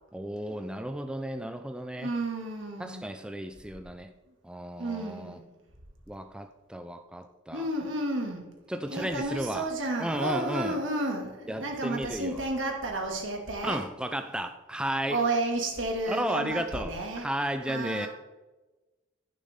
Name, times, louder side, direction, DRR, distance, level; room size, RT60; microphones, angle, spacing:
voice 1, 0.1-2.1 2.8-4.1 4.4-5.4 6.1-7.7 8.7-9.7 10.0-10.8 11.5-12.4 13.6-15.2 16.1-18.1, right 1 dB, 5° right, 8 dB, 0.4 m, -33 dB
voice 2, 1.9-3.2 4.8-5.4 7.5-8.5 8.9-13.8 15.1-17.3 17.7-18.1, right 2 dB, 80° right, 1 dB, 2.3 m, -32 dB
11.5 x 9.7 x 3.6 m, 1.2 s
head